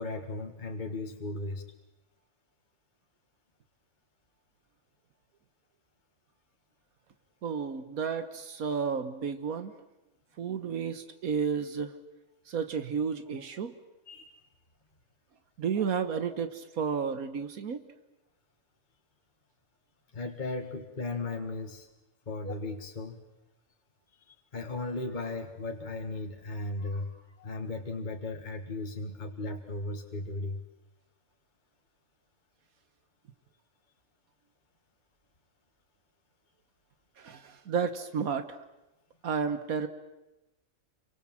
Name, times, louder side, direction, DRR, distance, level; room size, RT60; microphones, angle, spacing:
voice 1, 0.0-1.6 14.1-14.4 20.1-21.9 22.3-23.2 24.3-30.6, left 2 dB, 35° left, 3 dB, 1.9 m, -36 dB
voice 2, 7.4-9.7 10.4-12.0 12.5-13.7 15.6-17.8 37.2-38.6 39.2-39.9, right 6 dB, 80° right, 10 dB, 1.6 m, -32 dB
28.0 x 24.5 x 7.5 m, 0.99 s
omnidirectional pair, 1.5 m